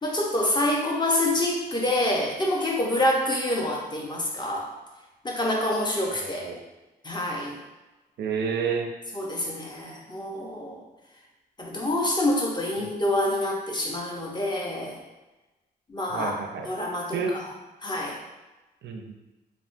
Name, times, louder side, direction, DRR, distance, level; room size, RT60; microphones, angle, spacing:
voice 1, 0.0-4.7 5.2-6.5 7.0-7.6 9.1-10.8 11.6-15.0 15.9-16.3 16.7-17.4 17.8-18.2, left 1 dB, 25° left, -1 dB, 0.6 m, -27 dB
voice 2, 6.2-6.6 8.2-8.9 12.8-12.9 16.1-16.7 17.1-17.3 18.8-19.1, right 5 dB, 80° right, 3 dB, 0.4 m, -29 dB
3.4 x 2.1 x 2.5 m, 1.1 s
cardioid pair, 80°, 18 cm